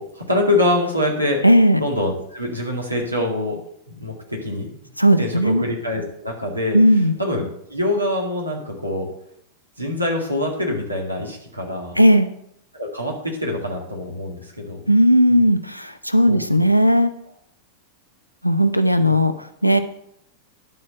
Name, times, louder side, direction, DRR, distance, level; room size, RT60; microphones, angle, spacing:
voice 1, 0.0-1.4 1.8-3.6 3.9-4.7 5.2-6.8 7.2-9.1 9.8-12.0 12.7-14.9 16.2-16.4, left 1 dB, 85° right, 0 dB, 2.0 m, -24 dB
voice 2, 1.4-1.8 5.0-5.6 6.7-7.1 12.0-12.3 14.9-17.1 18.4-19.3 19.6-19.8, equal, 90° left, 9 dB, 0.6 m, -16 dB
11.0 x 4.3 x 6.6 m, 0.74 s
figure-of-eight pair, 90°, 0 cm